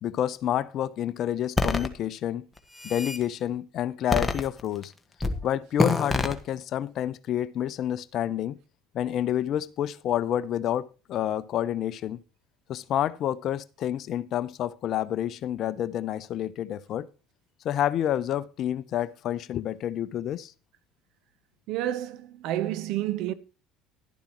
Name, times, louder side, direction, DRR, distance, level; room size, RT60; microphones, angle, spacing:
voice 1, 0.0-2.4 2.8-4.9 5.4-8.6 8.9-12.2 12.7-17.1 17.6-20.5, left 11 dB, 55° left, 0.6 m, -29 dB
sound 1, 1.6-1.9 2.6-3.2 4.1-4.8 5.2-5.4 5.8-6.3, left 2 dB, 10° left, 1.5 m, -26 dB
voice 2, 21.7-23.3, right 13 dB, 65° right, 0.8 m, -29 dB
11.5 x 11.5 x 3.0 m
hypercardioid pair, 75°, 0 cm